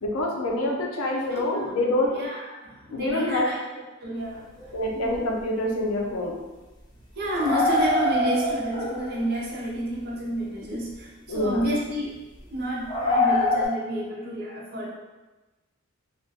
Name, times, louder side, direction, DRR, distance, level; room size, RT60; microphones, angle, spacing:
voice 1, 0.0-2.2 2.9-3.5 4.7-6.4 11.3-11.7, left 1 dB, 90° left, 0 dB, 0.5 m, -26 dB
voice 2, 1.0-1.8 2.1-3.6 4.0-5.2 5.8-5.9 7.2-12.2 12.5-14.9, right 1 dB, 50° right, -4 dB, 0.5 m, -30 dB
sound 1, 4.6-4.7 5.1-5.2 5.4-5.5 7.3-9.3 9.9-10.0 11.4-11.6 12.9-13.7, left 2 dB, 20° left, 0.4 m, -24 dB
2.3 x 2.1 x 2.7 m, 1.1 s
head